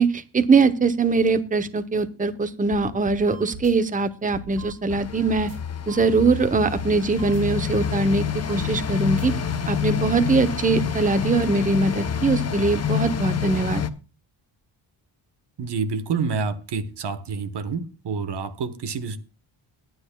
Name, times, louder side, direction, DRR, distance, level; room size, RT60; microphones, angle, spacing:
voice 1, 0.0-5.5 5.9-9.3 9.7-13.8, right 4 dB, 15° right, 0.7 m, -22 dB
sound 1, 2.7-3.2 3.5-3.7 4.3-5.1 5.4-5.6 6.2-6.9 7.2-7.4 8.0-8.8 9.1-9.3 9.9-10.0, right 4 dB, 75° right, 3.0 m, -39 dB
heart rate monitors, 3.3-3.4 4.6-4.7 5.9-6.0 7.2-7.3 8.5-8.6, right 9 dB, 35° right, 2.5 m, -43 dB
sound 2, 4.9-13.9, left 8 dB, 30° left, 0.7 m, -27 dB
voice 2, 15.6-19.2, right 5 dB, 55° right, 1.2 m, -28 dB
20.0 x 9.5 x 2.3 m
cardioid pair, 110°, 48 cm